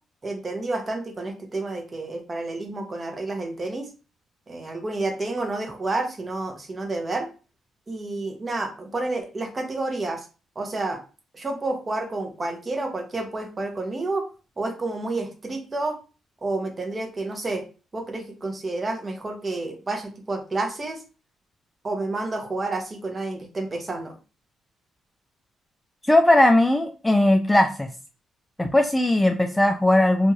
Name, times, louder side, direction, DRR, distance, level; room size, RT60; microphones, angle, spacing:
voice 1, 0.2-3.9 4.5-7.3 7.9-10.2 10.6-11.0 11.3-14.2 14.6-16.0 16.4-17.6 17.9-21.0 21.8-24.1, right 2 dB, 30° right, 4 dB, 0.8 m, -30 dB
voice 2, 26.1-27.9 28.6-30.3, left 1 dB, 10° left, 5 dB, 0.3 m, -18 dB
2.6 x 2.3 x 3.1 m, 0.33 s
cardioid pair, 90°, 0 cm